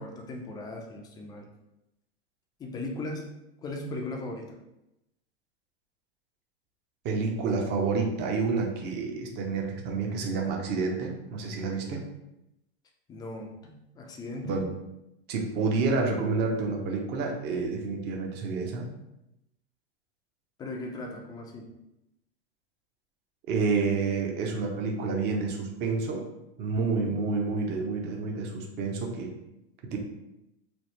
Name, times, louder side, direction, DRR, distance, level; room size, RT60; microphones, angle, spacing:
voice 1, 0.0-1.5 2.6-3.3 3.6-4.6 13.1-14.6 20.6-21.7 26.8-27.2, left 2 dB, 15° left, 1 dB, 0.3 m, -38 dB
voice 2, 7.0-12.1 14.4-14.7 15.3-18.9 23.5-26.3 26.6-29.3 29.8-30.0, right 4 dB, 35° right, 1 dB, 0.6 m, -29 dB
3.0 x 2.0 x 3.0 m, 0.88 s
hypercardioid pair, 110°, 31 cm